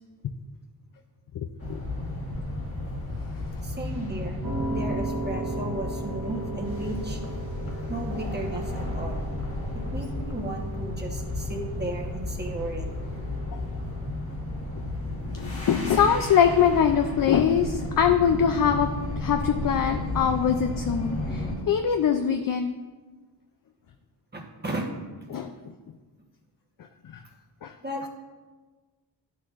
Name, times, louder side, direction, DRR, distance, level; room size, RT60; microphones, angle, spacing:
sound 1, 1.6-21.6, left 1 dB, 30° left, 1.4 m, -33 dB
voice 1, 3.6-4.4 4.7-7.2 7.9-9.2 9.9-12.9 24.3-24.9 27.8-28.1, right 1 dB, 20° right, 0 dB, 1.1 m, -34 dB
Piano, 4.4-14.5, right 2 dB, 60° right, 1.6 m, -38 dB
voice 2, 15.3-18.9 19.2-22.7 25.3-25.5 27.1-27.2 27.6-27.7, left 8 dB, 50° left, 6 dB, 0.4 m, -23 dB
11.0 x 6.0 x 2.5 m, 1.3 s
wide cardioid pair, 105°, 44 cm